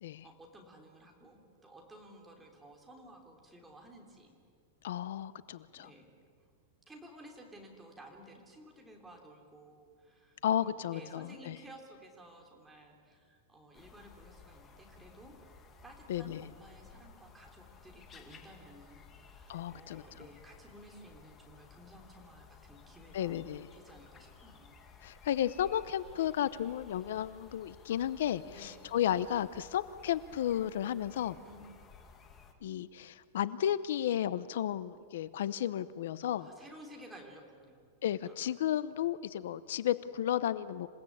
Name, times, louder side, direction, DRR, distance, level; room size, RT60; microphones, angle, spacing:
voice 1, 0.2-4.3 5.8-6.1 6.9-15.3 15.8-24.8 28.5-28.9 31.4-31.7 36.3-37.8 38.2-38.3, right 1 dB, 5° right, 0 dB, 3.3 m, -54 dB
voice 2, 4.8-5.9 10.4-11.5 16.1-16.5 19.5-20.0 23.1-23.7 25.0-31.4 32.6-36.5 38.0-40.9, left 11 dB, 75° left, 15 dB, 0.7 m, -33 dB
sound 1, 13.7-32.5, left 5 dB, 20° left, 1.9 m, -57 dB
27.5 x 17.5 x 8.7 m, 2.1 s
supercardioid pair, 165°, 0 cm